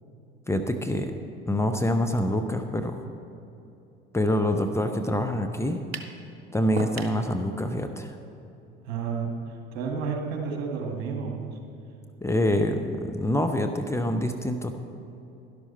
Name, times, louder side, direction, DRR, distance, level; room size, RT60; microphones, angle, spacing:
voice 1, 0.5-1.1 1.5-3.0 4.1-5.8 6.5-8.2 12.2-14.8, left 1 dB, 10° left, 5 dB, 0.8 m, -26 dB
sound 1, 5.9-6.2 6.8-7.2, right 4 dB, 90° right, 0.6 m, -33 dB
voice 2, 8.8-11.6, right 5 dB, 60° right, 2 dB, 1.9 m, -31 dB
12.0 x 11.5 x 4.4 m, 2.8 s
figure-of-eight pair, 60°, 30 cm